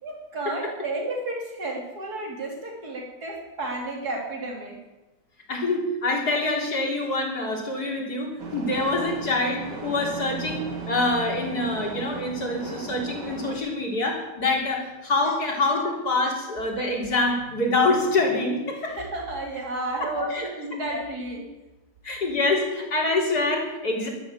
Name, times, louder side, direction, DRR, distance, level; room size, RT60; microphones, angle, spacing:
voice 1, 0.0-4.8 18.7-21.5, right 2 dB, 60° right, 0 dB, 3.8 m, -32 dB
voice 2, 5.5-19.0 20.0-20.5 22.0-24.1, left 2 dB, 60° left, 0 dB, 4.0 m, -25 dB
sound 1, 8.4-13.6, right 4 dB, 75° right, 2.7 m, -36 dB
13.5 x 12.5 x 7.5 m, 1.1 s
omnidirectional pair, 1.9 m